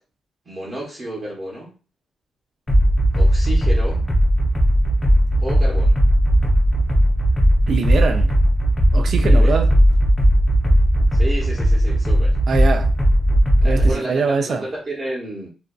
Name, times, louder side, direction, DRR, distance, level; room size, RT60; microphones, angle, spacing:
voice 1, 0.5-1.8 3.1-4.1 5.4-6.0 9.2-9.6 11.1-12.4 13.6-15.5, right 1 dB, 35° right, 0.9 m, -31 dB
sound 1, 2.7-13.9, equal, 20° left, 0.6 m, -16 dB
voice 2, 7.7-8.3 8.9-9.7 12.5-12.9 13.6-14.7, right 5 dB, 55° right, 0.4 m, -23 dB
2.5 x 2.2 x 2.2 m
cardioid pair, 115°, 0 cm